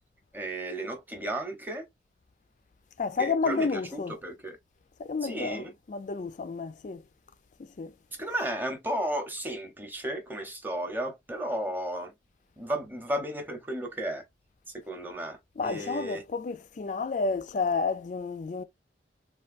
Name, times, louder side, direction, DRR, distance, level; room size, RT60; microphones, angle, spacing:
voice 1, 0.3-1.9 3.2-4.6 5.2-5.7 8.2-12.1 12.6-14.3 14.7-16.2, right 1 dB, 10° right, 0.7 m, -34 dB
voice 2, 3.0-4.2 5.0-7.0 7.8-7.9 15.6-18.6, left 4 dB, 45° left, 0.4 m, -30 dB
3.3 x 2.3 x 2.4 m
head